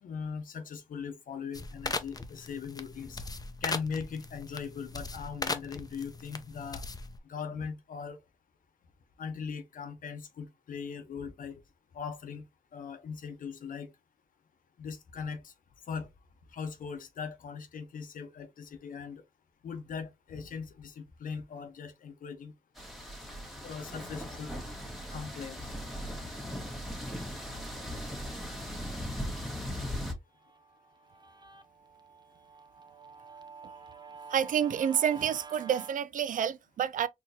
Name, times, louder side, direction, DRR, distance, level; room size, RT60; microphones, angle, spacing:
voice 1, 0.0-3.2 3.6-6.8 7.3-8.2 9.2-11.6 11.9-12.4 12.7-13.9 14.8-15.5 15.9-16.1 16.5-19.2 19.6-22.5 23.6-24.5 25.1-25.7, left 6 dB, 85° left, 0.8 m, -40 dB
sound 1, 1.5-7.2, left 3 dB, 30° left, 0.6 m, -39 dB
sound 2, 22.8-30.1, equal, ahead, 1.4 m, -38 dB
Guitar, 30.4-35.9, right 5 dB, 30° right, 0.7 m, -48 dB
voice 2, 34.3-37.1, right 9 dB, 75° right, 0.4 m, -29 dB
4.5 x 2.9 x 2.7 m
cardioid pair, 60°, 14 cm